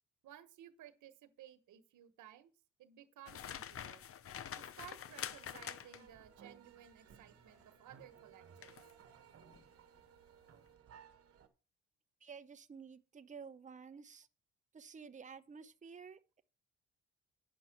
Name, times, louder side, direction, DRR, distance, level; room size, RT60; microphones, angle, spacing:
voice 1, 0.2-2.5 2.8-4.0 4.5-8.8, right 11 dB, 75° right, 1.2 m, -57 dB
sound 1, 3.3-6.2 8.6-8.9 9.4-9.6, left 9 dB, 50° left, 0.6 m, -46 dB
sound 2, 4.8-11.5, right 7 dB, 50° right, 1.3 m, -60 dB
voice 2, 12.2-14.3 14.7-16.4, right 6 dB, 25° right, 0.8 m, -52 dB
9.3 x 6.0 x 5.9 m
cardioid pair, 90°, 30 cm